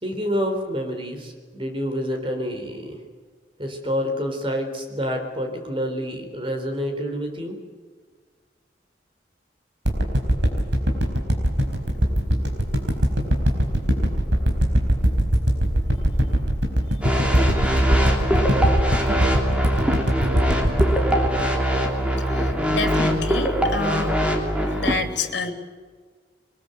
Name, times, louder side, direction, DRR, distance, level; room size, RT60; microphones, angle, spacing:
voice 1, 0.0-3.0 3.6-7.6, equal, 30° right, 4 dB, 4.0 m, -28 dB
sound 1, 9.8-22.2 22.6-22.7, equal, 80° right, 4.7 m, -21 dB
sound 2, 17.0-25.0, equal, 5° right, 3.1 m, -22 dB
voice 2, 17.5-18.0 18.8-19.1 22.3-24.1 24.7-25.5, left 3 dB, 75° left, 6 dB, 3.0 m, -29 dB
23.0 x 21.0 x 8.0 m, 1.5 s
head